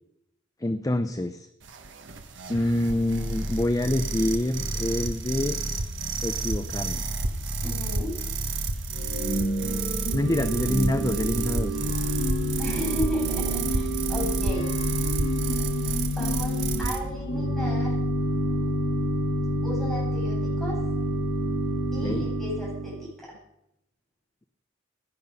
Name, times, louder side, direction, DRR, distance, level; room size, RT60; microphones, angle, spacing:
voice 1, 0.6-1.5 2.5-5.6 6.2-7.0 10.1-11.8 22.0-22.2, left 1 dB, 20° left, 9 dB, 0.6 m, -26 dB
sound 1, 1.6-17.0, right 3 dB, 65° right, 1.4 m, -30 dB
voice 2, 7.6-8.1 12.6-14.7 16.0-17.9 19.6-20.8 21.9-23.4, left 1 dB, ahead, -6 dB, 7.9 m, -34 dB
Organ / Church bell, 8.9-23.1, equal, 65° left, 6.5 m, -28 dB
17.5 x 11.0 x 5.4 m, 0.79 s
head